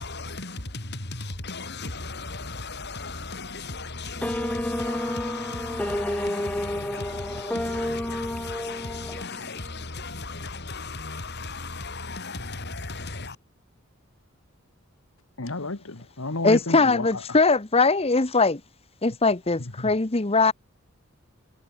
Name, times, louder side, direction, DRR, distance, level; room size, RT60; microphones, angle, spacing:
voice 1, 0.0-13.4, left 3 dB, 55° left, 4.4 m, -36 dB
sound 1, 4.2-9.7, left 1 dB, 5° left, 0.6 m, -30 dB
voice 2, 15.4-17.4 19.6-19.9, left 2 dB, 75° left, 1.7 m, -32 dB
voice 3, 16.4-18.6 19.0-20.5, left 3 dB, 30° left, 1.0 m, -21 dB
head